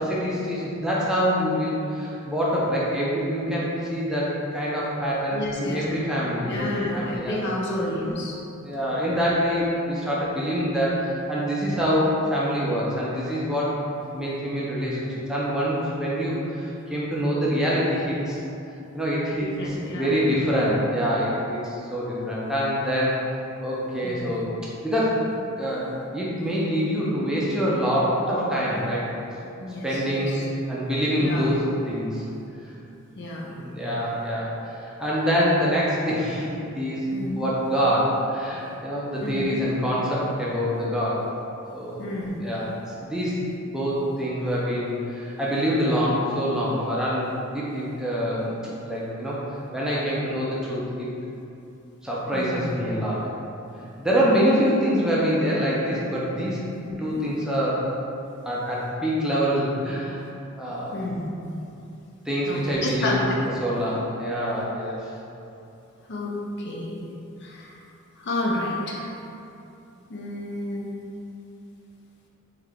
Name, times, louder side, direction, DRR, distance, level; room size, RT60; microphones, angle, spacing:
voice 1, 0.0-7.4 7.8-8.0 8.6-13.8 14.1-18.4 18.9-19.5 19.9-23.2 23.6-24.5 24.8-25.2 25.6-29.1 29.8-30.4 30.7-31.6 31.9-32.2 32.6-32.7 33.3-37.1 37.4-41.2 41.7-42.1 42.4-42.7 43.0-49.4 49.7-51.1 52.0-53.3 54.0-56.6 57.0-57.8 58.4-60.2 60.6-61.1 62.3-63.2 63.6-65.1, equal, 5° right, -7 dB, 0.5 m, -25 dB
voice 2, 5.3-6.0 6.4-8.4 19.6-20.2 24.0-24.3 29.6-30.5 31.2-31.5 33.2-33.4 37.1-37.4 39.2-39.6 42.0-42.4 52.3-52.7 56.8-57.2 60.9-61.3 62.5-63.4 66.1-67.0 67.4-67.7 68.2-69.1 70.1-70.9, left 1 dB, 50° left, -3 dB, 0.5 m, -30 dB
3.2 x 3.2 x 3.7 m, 2.8 s
head